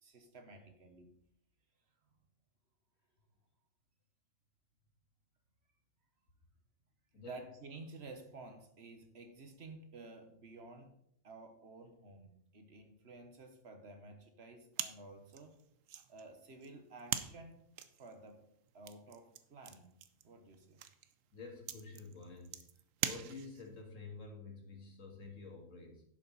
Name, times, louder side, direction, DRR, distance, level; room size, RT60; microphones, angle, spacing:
voice 1, 0.0-1.1 7.2-10.9 11.2-15.6 16.1-17.6 17.9-18.4 18.7-19.9 20.2-20.8, right 3 dB, 50° right, 5 dB, 1.6 m, -53 dB
sound 1, 14.7-23.8, right 9 dB, 75° right, 1.1 m, -44 dB
voice 2, 21.3-22.7 23.0-26.0, left 4 dB, 65° left, 1 dB, 2.4 m, -49 dB
11.0 x 7.6 x 4.2 m, 0.70 s
omnidirectional pair, 1.4 m